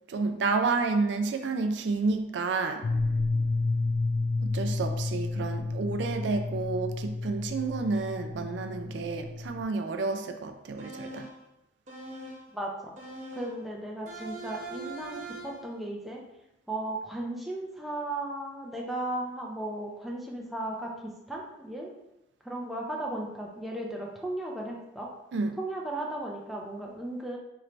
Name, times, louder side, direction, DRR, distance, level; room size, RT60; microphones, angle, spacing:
voice 1, 0.1-2.9 4.4-11.3 25.3-25.6, right 4 dB, 70° right, 6 dB, 0.3 m, -30 dB
sound 1, 2.8-9.6, left 3 dB, 80° left, 0.4 m, -30 dB
sound 2, 10.8-11.4 11.9-12.5 13.0-13.6 14.1-15.7, right 2 dB, 40° right, 0.9 m, -41 dB
voice 2, 12.5-12.9 13.3-16.2 16.7-21.9 22.4-25.1 25.6-27.4, right 1 dB, ahead, -2 dB, 0.5 m, -36 dB
3.1 x 2.6 x 4.3 m, 0.90 s
head